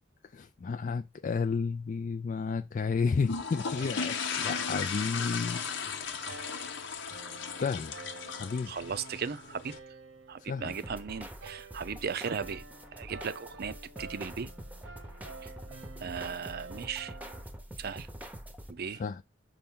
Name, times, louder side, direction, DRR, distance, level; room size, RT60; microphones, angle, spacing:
voice 1, 0.2-5.6 7.6-7.9 8.3-8.7 10.4-10.8 18.9-19.2, left 5 dB, 40° left, 0.3 m, -32 dB
sound 1, 3.2-9.8, left 5 dB, 65° left, 0.9 m, -36 dB
sound 2, 3.8-17.4, right 3 dB, 85° right, 1.0 m, -50 dB
voice 2, 8.7-9.7 10.3-12.6 12.9-14.5 15.4-15.5 16.0-17.1 17.8-18.1 18.7-19.0, right 6 dB, 55° right, 0.5 m, -37 dB
sound 3, 10.7-18.7, right 1 dB, 10° right, 0.8 m, -45 dB
5.7 x 5.2 x 3.7 m
head